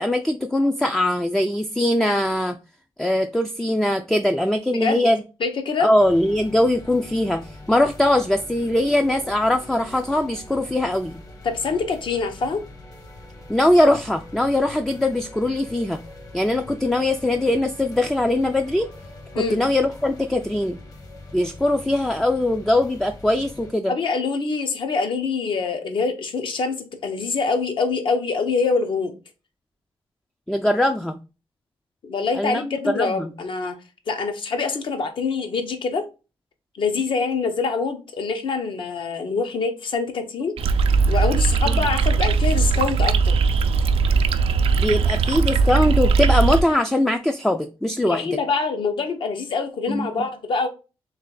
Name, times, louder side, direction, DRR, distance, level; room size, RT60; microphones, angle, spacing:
voice 1, 0.0-2.6 3.0-5.2 5.8-11.2 13.5-16.0 16.3-18.9 19.4-20.8 21.3-23.9 30.5-31.2 32.4-33.3 41.7-41.8 44.8-48.4 49.9-50.1, left 1 dB, 5° left, 0.3 m, -21 dB
voice 2, 4.7-5.1 5.4-5.9 11.4-12.6 19.3-19.6 23.9-29.2 32.0-33.8 34.1-36.1 36.7-40.5 41.1-43.4 48.1-50.7, left 4 dB, 60° left, 0.9 m, -25 dB
sound 1, 6.0-23.7, left 2 dB, 35° left, 1.0 m, -42 dB
sound 2, 40.6-46.6, right 4 dB, 75° right, 0.4 m, -19 dB
3.3 x 3.2 x 3.7 m
cardioid pair, 105°, 10 cm